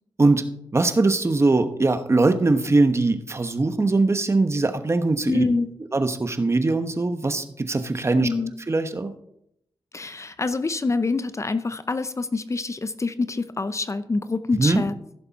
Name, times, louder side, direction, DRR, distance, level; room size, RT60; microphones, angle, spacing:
voice 1, 0.7-5.4 5.9-8.3 8.7-9.1 14.5-14.8, right 3 dB, 30° right, 9 dB, 1.1 m, -21 dB
voice 2, 5.3-5.7 8.2-8.5 9.9-15.2, left 3 dB, 35° left, 12 dB, 0.7 m, -26 dB
15.5 x 6.9 x 4.1 m, 0.76 s
cardioid pair, 70°, 9 cm